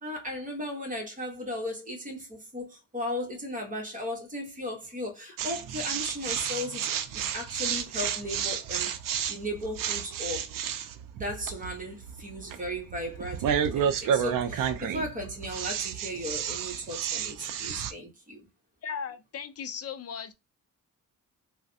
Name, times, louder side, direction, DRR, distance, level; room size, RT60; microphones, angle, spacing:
voice 1, 0.0-8.9 9.3-10.5 11.1-18.5, left 1 dB, 25° right, 1.0 m, -36 dB
sound 1, 5.4-17.9, right 8 dB, 75° right, 0.5 m, -31 dB
voice 2, 18.8-20.3, left 7 dB, 45° left, 0.5 m, -37 dB
3.2 x 2.1 x 2.6 m
wide cardioid pair, 130°, 33 cm